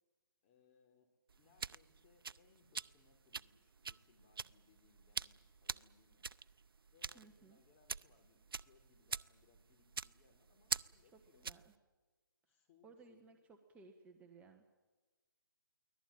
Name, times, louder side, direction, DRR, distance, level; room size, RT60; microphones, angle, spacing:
voice 1, 0.4-1.1 1.4-6.3 6.9-11.5 12.5-13.2, left 5 dB, 30° left, 5 dB, 4.4 m, -71 dB
sound 1, 1.3-11.7, right 5 dB, 80° right, 0.6 m, -45 dB
voice 2, 7.1-7.6 11.1-11.7 12.8-14.6, right 4 dB, 10° right, 4 dB, 1.5 m, -60 dB
23.5 x 18.0 x 9.2 m, 1.3 s
hypercardioid pair, 145°, 12 cm